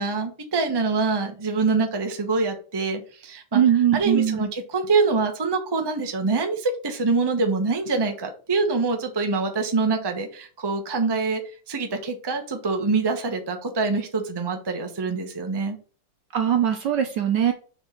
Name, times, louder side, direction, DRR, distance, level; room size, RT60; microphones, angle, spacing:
voice 1, 0.0-3.6 3.9-11.4 11.7-15.8, right 4 dB, 20° right, 4 dB, 0.7 m, -25 dB
voice 2, 3.5-4.4 16.3-17.5, right 9 dB, 65° right, 6 dB, 1.2 m, -20 dB
4.8 x 4.7 x 5.8 m, 0.39 s
omnidirectional pair, 2.4 m